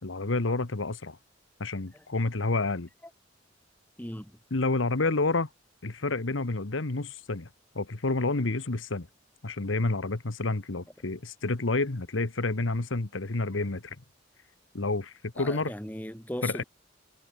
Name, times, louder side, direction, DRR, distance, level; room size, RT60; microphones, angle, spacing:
voice 1, 0.0-1.2 1.6-2.9 4.5-5.5 5.8-7.5 7.7-9.1 9.4-14.0 14.7-15.7 16.4-16.6, left 3 dB, 90° left, 1.3 m, -29 dB
voice 2, 4.0-4.4 15.4-16.6, left 1 dB, 10° left, 4.4 m, -38 dB
head